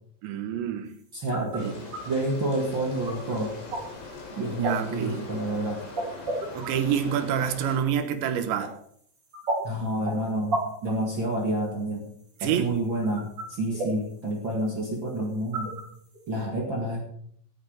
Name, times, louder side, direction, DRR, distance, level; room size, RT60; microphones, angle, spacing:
voice 1, 0.2-0.9 1.6-1.8 4.5-5.2 6.5-8.7 12.4-12.7, right 8 dB, 75° right, 9 dB, 3.5 m, -27 dB
sound 1, 0.9-16.4, right 2 dB, 25° right, 3.7 m, -36 dB
voice 2, 1.1-1.7 2.0-3.6 4.3-5.8 9.6-12.1 12.4-15.7 16.3-17.0, right 1 dB, 45° right, 0 dB, 1.6 m, -29 dB
sound 2, 1.6-7.8, left 3 dB, 75° left, 6.6 m, -42 dB
17.5 x 8.9 x 5.2 m, 0.66 s
omnidirectional pair, 5.3 m